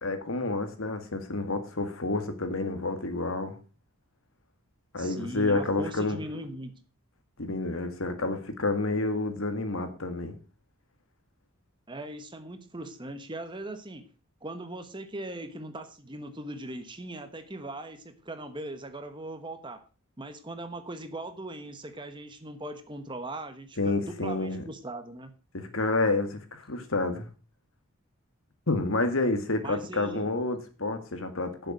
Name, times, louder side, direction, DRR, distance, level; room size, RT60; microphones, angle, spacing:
voice 1, 0.0-3.5 4.9-6.2 7.4-10.3 23.8-24.6 25.5-27.3 28.7-31.7, left 2 dB, 65° left, 8 dB, 1.9 m, -29 dB
voice 2, 5.0-6.7 11.9-14.0 14.4-19.8 20.2-25.3 29.6-30.3, right 1 dB, 20° right, 9 dB, 1.2 m, -39 dB
11.0 x 6.9 x 6.1 m, 0.34 s
head